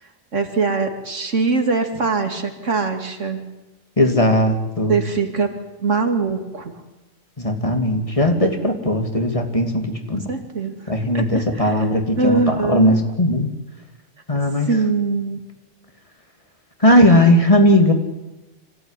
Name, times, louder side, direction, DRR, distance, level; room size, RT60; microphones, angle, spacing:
voice 1, 0.3-3.4 4.9-5.5 5.8-6.8 10.1-10.8 11.1-11.7 12.2-13.0 14.7-15.4, right 4 dB, 75° right, 6 dB, 2.8 m, -22 dB
voice 2, 4.0-5.0 7.4-10.2 10.9-13.5 14.3-14.7 16.8-17.9, left 1 dB, 25° left, 4 dB, 2.7 m, -17 dB
25.5 x 16.5 x 10.0 m, 1.0 s
omnidirectional pair, 1.3 m